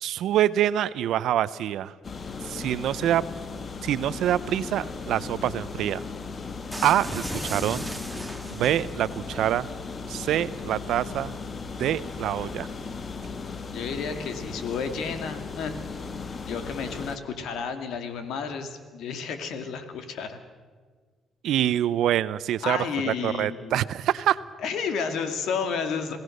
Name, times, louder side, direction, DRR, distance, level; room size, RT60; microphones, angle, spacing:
voice 1, 0.0-1.9 2.4-3.2 3.8-6.0 6.8-7.9 8.5-9.7 10.1-11.4 11.8-12.7 21.4-22.8 23.1-24.4, right 11 dB, 80° right, 16 dB, 0.7 m, -25 dB
sound 1, 2.0-17.2, left 4 dB, 40° left, 1.5 m, -37 dB
sound 2, 6.7-9.2, right 1 dB, ahead, 1.9 m, -36 dB
voice 2, 13.7-15.8 16.4-20.4 22.6-23.9 24.6-26.2, left 6 dB, 80° left, 8 dB, 2.3 m, -31 dB
27.5 x 17.5 x 6.6 m, 1.5 s
cardioid pair, 90°, 0 cm